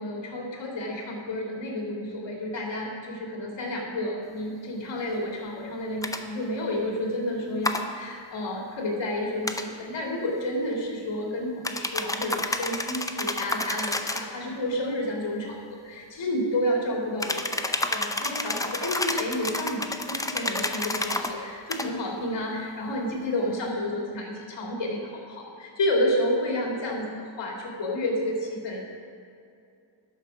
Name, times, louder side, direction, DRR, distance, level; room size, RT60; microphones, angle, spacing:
voice 1, 0.0-19.8 20.1-28.9, left 1 dB, 70° left, -1 dB, 2.4 m, -30 dB
sound 1, 6.0-6.2 7.6-7.8 9.4-9.7 11.6-14.3 17.2-21.3 21.7-21.9, left 2 dB, 10° left, 0.5 m, -29 dB
12.0 x 5.0 x 6.0 m, 2.5 s
cardioid pair, 90°, 45 cm